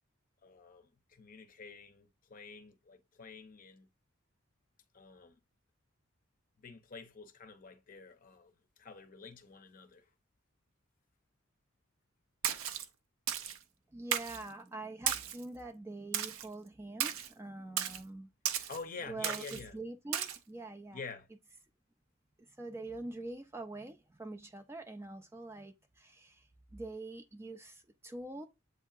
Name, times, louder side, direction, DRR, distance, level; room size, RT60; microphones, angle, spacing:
voice 1, 0.4-3.9 4.9-5.4 6.6-10.1 18.7-19.8 20.9-21.3, left 4 dB, 40° left, 0.6 m, -48 dB
Splash splatter, 12.4-12.8 13.3-13.6 14.1-14.4 15.1-15.4 16.1-16.5 17.0-17.3 17.8-18.0 18.4-18.8 19.2-19.6 20.1-20.4, right 9 dB, 80° right, 0.5 m, -34 dB
voice 2, 13.9-18.7 19.1-21.0 22.4-28.4, right 2 dB, 10° right, 0.3 m, -45 dB
7.9 x 2.7 x 2.4 m
head